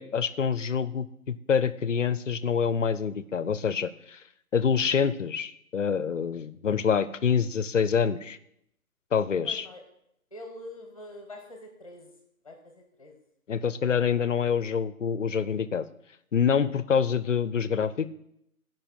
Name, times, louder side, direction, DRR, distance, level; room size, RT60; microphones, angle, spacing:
voice 1, 0.0-4.2 4.5-8.4 9.1-9.6 13.5-15.9 16.3-18.1, left 7 dB, 60° left, 14 dB, 0.6 m, -26 dB
voice 2, 9.4-9.8 10.3-12.2 12.4-13.2, left 1 dB, 25° left, 3 dB, 1.1 m, -45 dB
12.5 x 5.5 x 5.3 m, 0.77 s
hypercardioid pair, 165°, 44 cm